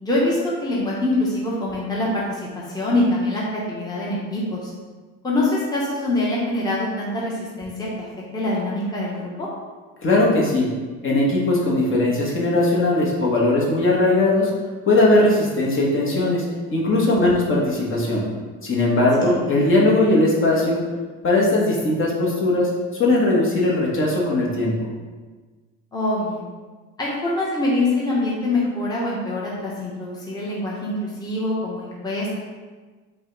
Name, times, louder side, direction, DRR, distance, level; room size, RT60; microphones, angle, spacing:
voice 1, 0.0-4.7 5.2-8.1 8.3-9.5 17.0-17.4 19.2-19.3 25.9-26.5 27.0-32.4, left 2 dB, 10° left, -5 dB, 0.9 m, -24 dB
voice 2, 10.0-10.7 11.0-14.5 14.9-18.2 18.6-20.8 21.2-22.7 23.0-24.9, left 2 dB, 40° left, -3 dB, 1.1 m, -19 dB
4.9 x 2.2 x 3.8 m, 1.4 s
supercardioid pair, 100°, 33 cm